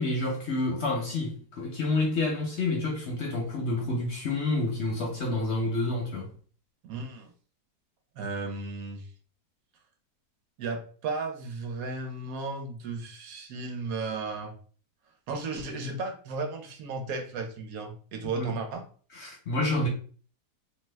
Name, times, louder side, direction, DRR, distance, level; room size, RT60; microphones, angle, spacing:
voice 1, 0.0-6.3 18.3-18.6 19.1-19.9, left 2 dB, 65° left, 0.7 m, -29 dB
voice 2, 6.8-7.3 8.2-9.1 10.6-14.6 15.3-18.8, right 3 dB, 65° right, 1.0 m, -34 dB
2.7 x 2.2 x 3.2 m
omnidirectional pair, 1.8 m